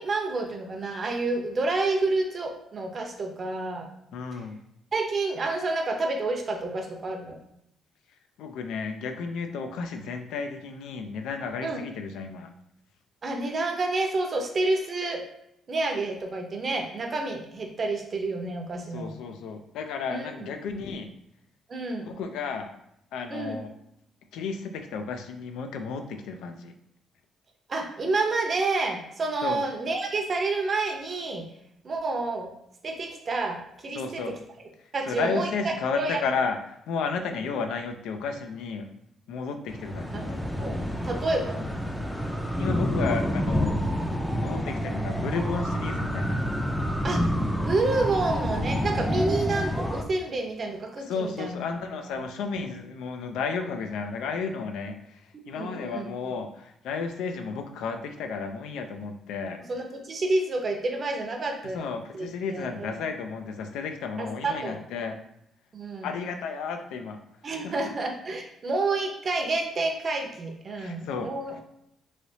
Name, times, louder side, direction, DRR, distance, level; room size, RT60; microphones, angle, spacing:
voice 1, 0.0-3.9 4.3-4.4 4.9-7.4 11.6-11.8 13.2-15.2 15.7-19.1 20.1-20.5 21.7-22.1 23.3-23.6 27.7-31.5 31.8-32.5 32.8-34.4 34.9-36.2 40.1-41.7 47.0-47.2 47.6-51.6 52.0-52.2 55.3-56.1 59.6-63.1 64.2-64.8 65.7-66.1 67.4-71.6, right 3 dB, 40° right, 2 dB, 0.6 m, -29 dB
voice 2, 4.1-4.6 8.4-12.5 18.9-21.1 22.0-22.7 23.1-23.7 24.3-26.7 29.4-29.6 33.9-34.4 35.1-36.6 36.9-38.9 39.3-40.3 42.6-43.8 44.4-46.3 51.1-55.0 55.5-59.6 61.7-65.2 66.0-67.2 67.6-67.9 70.8-71.3, left 5 dB, 85° left, 6 dB, 0.4 m, -32 dB
sound 1, 39.7-50.0, equal, ahead, 0.4 m, -28 dB
3.2 x 2.9 x 2.7 m, 0.77 s
cardioid pair, 90°, 0 cm